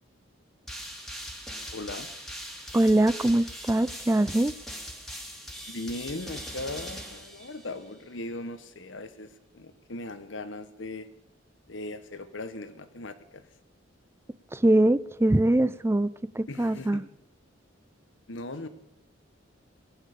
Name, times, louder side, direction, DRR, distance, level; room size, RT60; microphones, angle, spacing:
sound 1, 0.7-7.9, equal, ahead, 2.2 m, -41 dB
voice 1, 1.7-2.1 5.7-11.1 11.7-13.4 16.5-17.0 18.3-18.7, left 2 dB, 75° left, 11 dB, 1.3 m, -38 dB
voice 2, 2.7-4.5 14.5-17.0, right 1 dB, 15° right, 17 dB, 0.5 m, -23 dB
19.5 x 10.0 x 6.8 m, 0.90 s
head